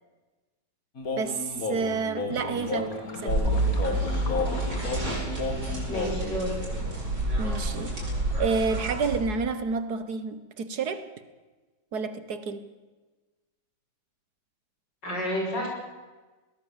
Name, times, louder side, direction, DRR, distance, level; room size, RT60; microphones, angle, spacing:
sound 1, 1.0-6.2, left 3 dB, 55° left, 2.7 m, -32 dB
voice 1, 1.2-3.4 7.4-8.0 8.4-11.1 11.9-12.7, right 5 dB, 65° right, 1.8 m, -30 dB
sound 2, 3.3-9.2, right 1 dB, 80° right, 7.1 m, -29 dB
voice 2, 5.9-6.5 15.0-15.7, equal, 90° left, 6.6 m, -30 dB
21.0 x 19.0 x 7.3 m
omnidirectional pair, 1.9 m